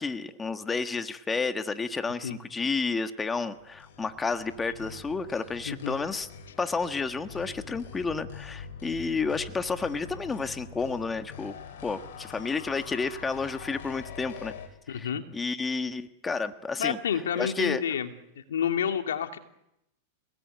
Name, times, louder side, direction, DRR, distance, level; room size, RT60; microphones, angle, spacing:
voice 1, 0.0-6.3 6.6-11.6 11.8-14.5 14.9-17.0 17.3-17.8, left 4 dB, 15° left, 8 dB, 1.5 m, -31 dB
sound 1, 3.6-14.7, left 6 dB, 70° left, 6.7 m, -44 dB
voice 2, 5.7-6.0 14.9-15.2 16.8-18.1 18.4-19.4, left 8 dB, 90° left, 6 dB, 2.6 m, -29 dB
28.5 x 19.0 x 9.4 m, 0.85 s
hypercardioid pair, 125°, 0 cm